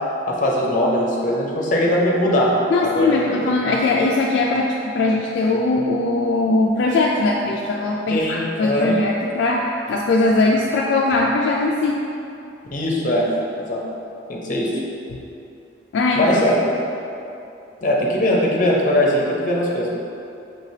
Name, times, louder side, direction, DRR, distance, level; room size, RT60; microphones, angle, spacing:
voice 1, 0.3-2.5 2.8-3.5 8.1-9.0 12.7-13.3 13.6-13.8 14.3-14.7 16.2-16.7 17.8-19.9, left 1 dB, 45° left, -2 dB, 0.7 m, -20 dB
voice 2, 2.7-12.0 15.1-15.2 15.9-16.2, left 2 dB, 65° left, -2 dB, 0.3 m, -20 dB
5.7 x 3.2 x 2.7 m, 2.7 s
head